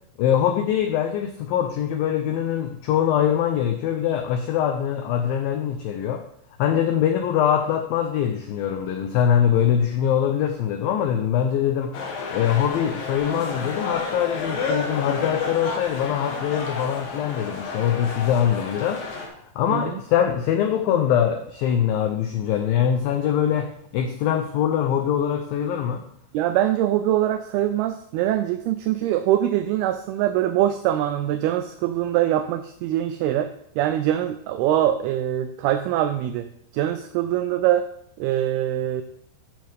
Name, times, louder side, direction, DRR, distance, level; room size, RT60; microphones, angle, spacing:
voice 1, 0.2-6.2 6.6-12.0 12.3-19.0 19.6-26.0, left 9 dB, 90° left, 6 dB, 2.0 m, -23 dB
sound 1, 11.9-19.3, left 4 dB, 60° left, 2.8 m, -31 dB
voice 2, 26.3-33.5 33.8-36.5 36.7-37.9 38.2-39.0, right 12 dB, 85° right, 9 dB, 2.2 m, -23 dB
13.0 x 6.5 x 3.5 m, 0.68 s
omnidirectional pair, 5.0 m